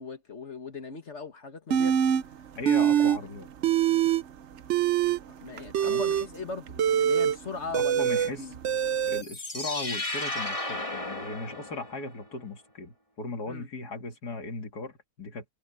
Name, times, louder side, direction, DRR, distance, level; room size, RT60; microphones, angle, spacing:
voice 1, 0.0-1.9 2.8-3.1 5.4-8.6 13.5-13.7, left 4 dB, 45° left, 2.1 m, -39 dB
sound 1, 1.7-2.2 2.6-3.2 3.5-4.2 4.6-9.2, right 9 dB, 55° right, 0.9 m, -24 dB
voice 2, 2.5-3.5 5.8-6.0 7.7-8.5 9.1-15.4, left 3 dB, 80° left, 2.9 m, -37 dB
sound 2, 9.1-12.2, left 2 dB, 20° left, 1.7 m, -34 dB
omnidirectional pair, 1.7 m